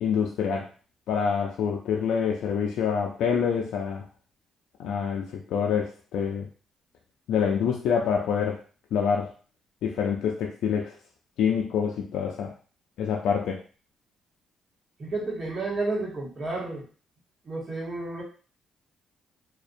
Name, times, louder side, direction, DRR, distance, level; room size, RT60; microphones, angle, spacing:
voice 1, 0.0-0.7 1.1-4.0 4.8-6.5 7.3-8.6 8.9-9.3 9.8-10.9 11.4-12.5 13.0-13.6, left 7 dB, 80° left, 0 dB, 0.3 m, -26 dB
voice 2, 15.0-16.8 17.4-18.2, right 2 dB, 40° right, -3 dB, 1.0 m, -31 dB
2.5 x 2.1 x 2.5 m, 0.38 s
cardioid pair, 90°, 0 cm